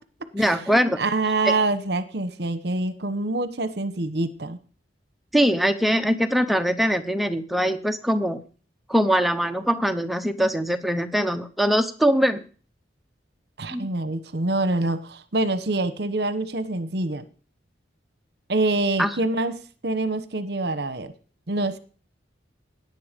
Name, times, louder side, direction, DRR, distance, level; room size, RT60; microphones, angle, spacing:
voice 1, 0.3-1.0 5.3-8.4 8.9-12.4 13.7-13.9 19.0-19.1, equal, ahead, 7 dB, 0.8 m, -22 dB
voice 2, 1.0-4.6 13.6-17.2 18.5-19.6 19.8-21.1 21.5-21.8, right 2 dB, 60° right, 12 dB, 1.1 m, -25 dB
17.5 x 10.5 x 5.2 m, 0.40 s
head